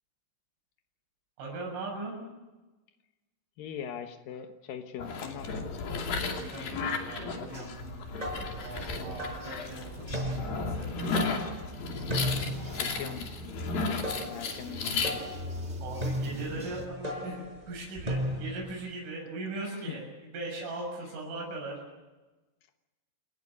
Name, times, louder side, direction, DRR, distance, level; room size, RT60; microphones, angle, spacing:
voice 1, 1.4-2.2 6.3-7.9 8.6-11.4 15.8-20.0 20.3-21.8, right 2 dB, 75° right, -2 dB, 9.4 m, -39 dB
voice 2, 3.6-5.7 12.8-15.2 19.7-20.0, left 9 dB, 75° left, 5 dB, 2.1 m, -41 dB
sound 1, 5.0-15.1, left 4 dB, 50° left, 4.1 m, -34 dB
sound 2, 6.9-16.9, equal, 55° right, 0.7 m, -44 dB
sound 3, 7.9-18.7, equal, 10° right, 5.0 m, -36 dB
29.0 x 16.0 x 9.5 m, 1.1 s
omnidirectional pair, 5.7 m